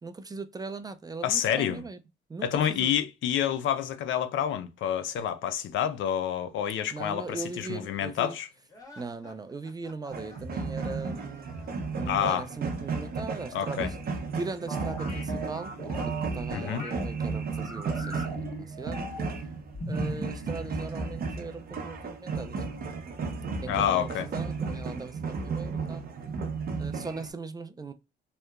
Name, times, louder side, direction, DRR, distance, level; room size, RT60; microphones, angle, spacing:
voice 1, 0.0-2.0 2.3-2.9 6.9-8.4 9.0-11.5 11.9-14.0 14.3-19.0 19.9-22.7 23.6-26.0 26.8-27.9, right 3 dB, 20° right, 0.3 m, -39 dB
voice 2, 1.2-1.8 2.4-8.5 12.1-12.4 13.5-13.9 16.5-16.9 23.7-24.3, left 10 dB, 75° left, 0.4 m, -28 dB
sound 1, 8.7-12.2, left 1 dB, 15° left, 1.0 m, -53 dB
sound 2, 10.1-27.3, right 4 dB, 50° right, 0.7 m, -34 dB
sound 3, 14.7-17.0 17.5-19.4 19.7-20.3, equal, 35° left, 1.5 m, -38 dB
2.8 x 2.1 x 2.2 m
cardioid pair, 90°, 20 cm